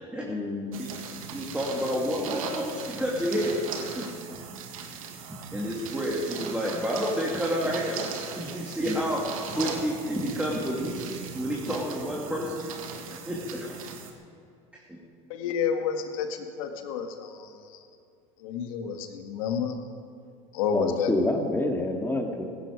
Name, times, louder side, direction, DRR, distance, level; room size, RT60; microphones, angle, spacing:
voice 1, 0.2-0.8 8.9-9.0 20.7-22.4, left 2 dB, 15° left, 3 dB, 2.4 m, -28 dB
sound 1, 0.7-14.1, right 6 dB, 85° right, 1.7 m, -38 dB
voice 2, 1.3-4.1 5.3-12.7 13.1-13.8 14.7-15.0, equal, 5° right, -4 dB, 2.7 m, -30 dB
voice 3, 15.3-17.8 18.4-19.8 20.5-21.1, left 7 dB, 75° left, 5 dB, 1.8 m, -30 dB
16.5 x 14.0 x 4.9 m, 2.6 s
hypercardioid pair, 90°, 17 cm